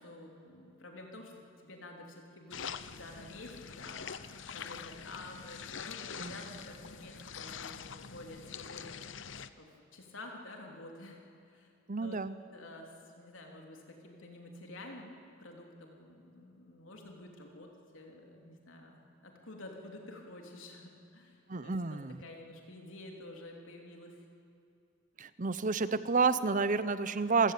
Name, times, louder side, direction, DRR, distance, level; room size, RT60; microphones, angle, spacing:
voice 1, 0.0-1.3 1.6-9.0 9.5-11.2 11.5-11.7 12.0-12.2 12.5-24.2, left 2 dB, 85° left, 1 dB, 3.4 m, -50 dB
sound 1, 2.5-9.5, left 7 dB, 70° left, 0.8 m, -44 dB
voice 2, 11.9-12.4 21.5-22.2 25.2-27.5, right 4 dB, 40° right, 14 dB, 0.8 m, -30 dB
27.5 x 16.0 x 8.6 m, 2.6 s
head